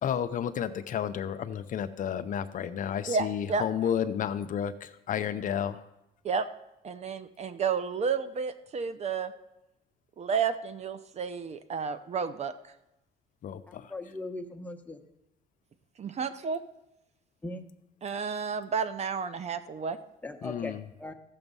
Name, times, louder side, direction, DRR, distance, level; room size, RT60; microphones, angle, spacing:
voice 1, 0.0-5.8 13.4-13.9 20.4-20.8, left 9 dB, 50° left, 10 dB, 0.6 m, -31 dB
voice 2, 3.1-3.6 6.2-6.5 6.8-9.3 10.2-12.5 16.0-16.6 18.0-20.0, right 5 dB, 40° right, 12 dB, 0.6 m, -31 dB
voice 3, 13.7-15.0 17.4-17.6 20.2-21.1, left 2 dB, 10° left, 5 dB, 1.1 m, -39 dB
14.0 x 7.0 x 5.4 m, 0.90 s
cardioid pair, 110°, 17 cm